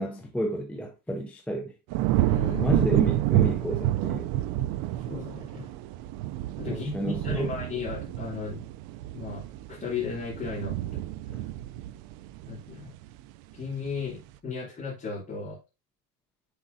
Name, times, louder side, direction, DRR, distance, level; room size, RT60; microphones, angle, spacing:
voice 1, 0.0-1.7 2.5-4.3 6.7-7.5 11.3-11.4, equal, 5° left, 0.5 m, -31 dB
sound 1, 1.9-13.2 13.6-14.1, right 14 dB, 55° right, 0.5 m, -29 dB
voice 2, 2.3-2.7 5.1-5.7 6.6-8.6 9.1-9.4 9.7-10.7 12.5-12.9 13.5-15.6, left 5 dB, 20° left, 2.8 m, -35 dB
10.0 x 4.6 x 2.6 m
cardioid pair, 165°, 46 cm